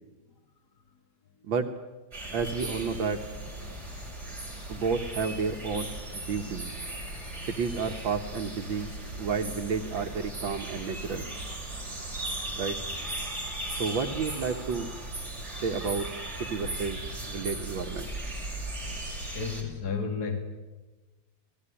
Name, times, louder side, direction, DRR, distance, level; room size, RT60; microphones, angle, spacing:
sound 1, 2.1-19.6, right 1 dB, 35° right, 6.1 m, -37 dB
voice 1, 2.3-3.2 4.7-6.7 7.5-11.3 12.6-12.8 13.8-14.9 15.6-16.1 16.5-17.0 17.3-18.1, right 5 dB, 75° right, 4 dB, 2.1 m, -31 dB
voice 2, 3.6-4.0 4.8-4.9 6.3-6.4 7.2-7.4 13.2-13.5 19.3-20.4, left 5 dB, 55° left, 3 dB, 3.1 m, -35 dB
29.5 x 20.0 x 10.0 m, 1.2 s
omnidirectional pair, 2.1 m